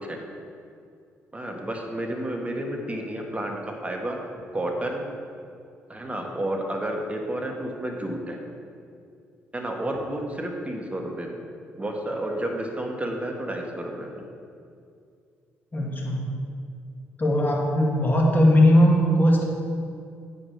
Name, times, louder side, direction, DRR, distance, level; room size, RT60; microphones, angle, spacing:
voice 1, 1.3-4.2 4.5-5.0 5.9-8.4 9.5-11.4 11.8-14.2, right 1 dB, 20° right, 1 dB, 1.7 m, -31 dB
voice 2, 15.7-16.3 17.2-19.4, equal, 30° left, -2 dB, 2.3 m, -19 dB
8.5 x 5.2 x 5.8 m, 2.4 s
hypercardioid pair, 45°, 6 cm